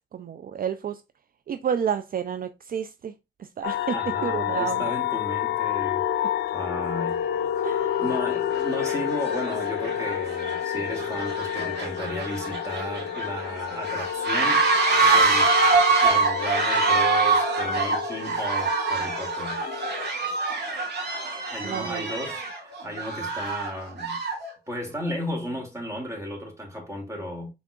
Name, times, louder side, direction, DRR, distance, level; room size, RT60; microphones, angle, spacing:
voice 1, 0.1-1.0 1.5-3.1 3.4-4.0 4.2-4.9 7.6-8.0 21.6-22.2, right 8 dB, 55° right, 0.4 m, -30 dB
sound 1, 3.6-20.1, left 10 dB, 85° left, 0.4 m, -29 dB
voice 2, 3.9-7.2 7.5-14.7 15.1-15.5 16.0-19.6 21.5-24.2 24.7-27.5, equal, 15° right, 2.5 m, -34 dB
sound 2, 7.1-7.2 7.9-8.2 8.5-24.5, right 4 dB, 80° right, 2.0 m, -25 dB
5.8 x 3.6 x 2.4 m
cardioid pair, 65°, 18 cm